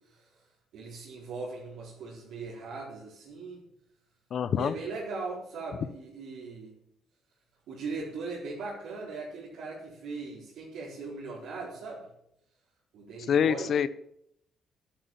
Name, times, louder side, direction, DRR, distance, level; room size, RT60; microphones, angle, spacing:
voice 1, 0.7-3.6 4.5-6.7 7.7-12.1 12.9-13.7, right 3 dB, 85° right, -6 dB, 4.2 m, -39 dB
voice 2, 4.3-4.7 13.3-13.9, left 8 dB, 60° left, 14 dB, 0.9 m, -25 dB
11.5 x 11.5 x 7.1 m, 0.75 s
cardioid pair, 90°, 0 cm